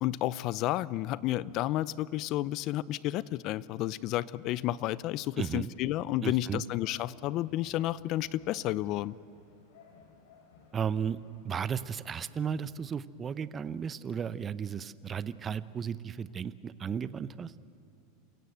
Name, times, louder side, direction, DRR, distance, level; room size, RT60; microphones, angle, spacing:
voice 1, 0.0-9.2, left 15 dB, 45° left, 19 dB, 0.6 m, -31 dB
voice 2, 5.4-5.7 6.2-6.6 10.7-17.5, right 7 dB, 25° right, 15 dB, 0.7 m, -34 dB
sound 1, 6.8-12.6, left 4 dB, 80° left, 5.6 m, -60 dB
28.5 x 17.0 x 7.9 m, 2.7 s
supercardioid pair, 130°, 0 cm